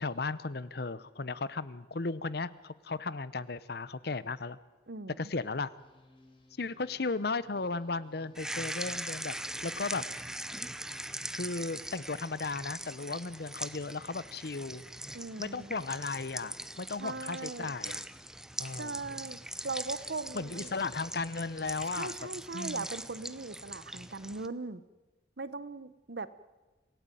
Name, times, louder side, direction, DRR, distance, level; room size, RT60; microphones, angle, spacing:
voice 1, 0.0-4.6 5.2-5.7 6.6-9.4 9.6-10.0 11.3-14.8 15.4-18.0 18.6-19.0 20.3-22.1 22.5-22.9, left 3 dB, 60° left, 17 dB, 0.8 m, -35 dB
voice 2, 4.9-5.3 15.1-15.7 17.0-17.7 18.7-19.4 19.6-20.7 21.9-24.8 25.4-26.3, right 3 dB, 65° right, 15 dB, 1.0 m, -39 dB
sound 1, 5.8-11.7, left 1 dB, 30° left, 4.3 m, -61 dB
sound 2, 8.3-24.5, right 1 dB, 5° right, 0.7 m, -41 dB
26.5 x 16.5 x 9.2 m, 1.2 s
head